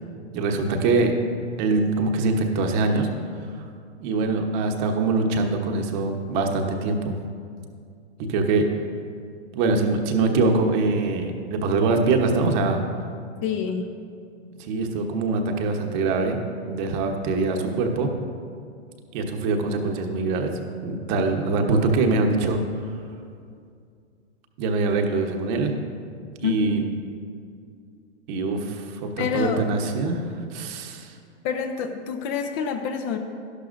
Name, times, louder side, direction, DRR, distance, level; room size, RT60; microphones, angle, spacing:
voice 1, 0.3-1.1 1.6-3.1 4.0-7.1 8.2-8.7 9.5-12.8 14.6-16.4 16.7-18.1 19.1-20.5 20.8-22.6 24.6-25.7 26.4-26.8 28.3-30.2 30.5-31.1, right 3 dB, 40° right, 4 dB, 1.1 m, -23 dB
voice 2, 13.4-13.9 26.4-26.8 29.2-29.6 31.4-33.2, left 6 dB, 35° left, 6 dB, 0.7 m, -27 dB
12.0 x 11.5 x 2.6 m, 2.3 s
hypercardioid pair, 125°, 35 cm